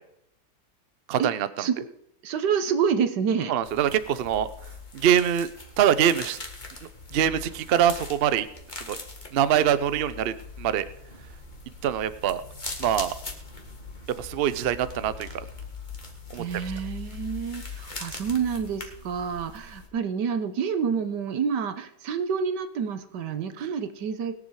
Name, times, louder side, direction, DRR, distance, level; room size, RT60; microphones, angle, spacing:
voice 1, 1.1-1.7 3.5-4.5 4.9-5.5 5.8-6.4 7.1-8.5 8.8-9.0 9.3-10.9 11.8-12.4 12.8-13.1 14.2-15.5 16.3-16.4, right 9 dB, 55° right, 14 dB, 0.7 m, -24 dB
voice 2, 2.2-3.5 16.4-24.4, right 6 dB, 85° right, 10 dB, 1.7 m, -28 dB
sound 1, 3.6-19.9, left 3 dB, 30° left, 1.9 m, -41 dB
20.5 x 7.4 x 4.8 m, 0.76 s
omnidirectional pair, 1.8 m